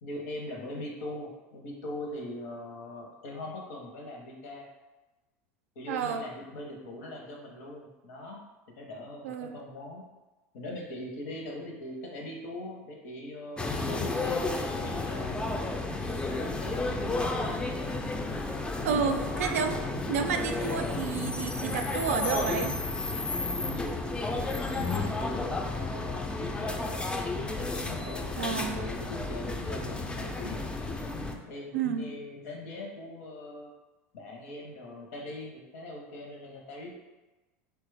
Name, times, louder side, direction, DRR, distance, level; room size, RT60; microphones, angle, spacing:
voice 1, 0.0-4.7 5.8-8.4 8.8-10.0 10.5-14.4 14.8-18.0 18.8-19.4 23.7-27.1 27.6-30.6 31.4-33.7 34.1-37.0, left 1 dB, 75° left, 0 dB, 0.8 m, -41 dB
voice 2, 5.9-6.2 9.2-9.6 18.8-19.8 20.1-22.8 28.4-28.8 31.7-32.1, right 6 dB, 85° right, 6 dB, 0.3 m, -30 dB
sound 1, 13.6-31.4, left 2 dB, 10° left, 0.3 m, -32 dB
3.1 x 2.2 x 3.3 m, 1.1 s
hypercardioid pair, 95°, 8 cm